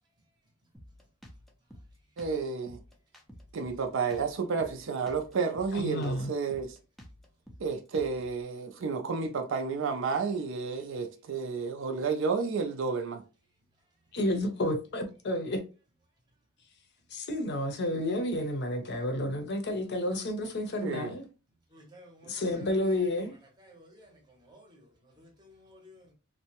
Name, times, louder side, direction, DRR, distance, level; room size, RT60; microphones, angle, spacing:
Drum kit, 0.7-8.4, equal, ahead, 0.4 m, -52 dB
voice 1, 2.2-2.8 3.5-6.8 7.6-13.2 20.8-21.2, right 5 dB, 60° right, 0.4 m, -31 dB
voice 2, 5.7-6.3 14.1-15.6 17.1-21.2 22.3-23.4, left 1 dB, 55° left, 0.6 m, -31 dB
voice 3, 21.7-23.0 23.6-26.1, equal, 20° right, 0.7 m, -55 dB
2.6 x 2.1 x 2.8 m
head